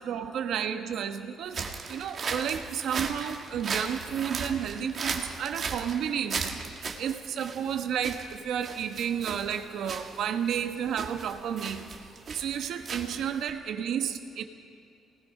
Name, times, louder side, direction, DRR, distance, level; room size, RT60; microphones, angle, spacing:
voice 1, 0.0-6.6 7.0-11.8 12.3-14.4, right 8 dB, 65° right, 6 dB, 1.3 m, -31 dB
sound 1, 1.5-13.5, right 5 dB, 40° right, 1.7 m, -37 dB
28.5 x 19.5 x 5.4 m, 2.4 s
cardioid pair, 155°, 0 cm